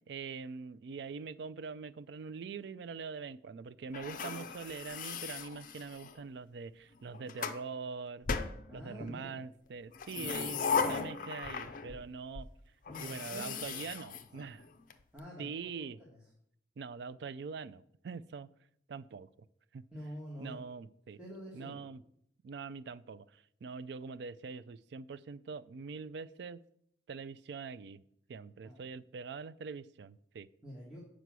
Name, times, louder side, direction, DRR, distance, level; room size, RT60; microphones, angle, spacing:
voice 1, 0.1-8.3 8.7-12.5 13.0-14.6 15.4-16.0 16.8-18.5 18.9-19.3 19.7-19.8 20.4-21.2 21.5-22.0 22.4-26.6 27.1-28.0 28.3-30.5, right 5 dB, 65° right, 16 dB, 0.3 m, -43 dB
sound 1, 3.9-6.2 6.9-7.6 8.3-9.2 9.9-12.1 12.3-12.5 12.9-14.9, left 5 dB, 45° left, 0.5 m, -37 dB
voice 2, 8.7-9.4 12.8-13.9 15.1-16.2 19.9-20.7 21.2-21.9 28.6-28.8 30.6-31.0, equal, 5° right, -6 dB, 1.5 m, -47 dB
8.1 x 5.0 x 6.0 m, 0.71 s
head